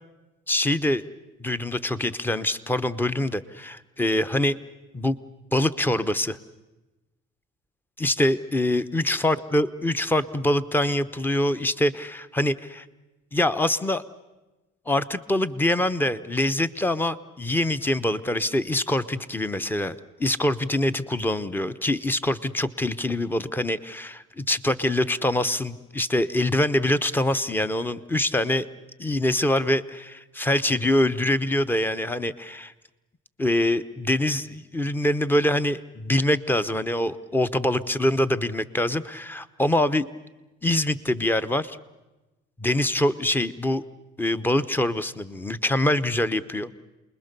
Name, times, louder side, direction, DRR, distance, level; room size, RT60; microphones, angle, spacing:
voice 1, 0.5-1.0 1.4-4.5 4.9-5.2 5.5-6.4 8.0-12.8 13.3-14.0 14.9-28.7 29.0-32.7 33.4-40.1 40.6-41.8 42.6-43.8 44.2-46.7, left 1 dB, 10° left, 14 dB, 0.8 m, -24 dB
28.5 x 21.0 x 6.8 m, 1.1 s
cardioid pair, 105°, 21 cm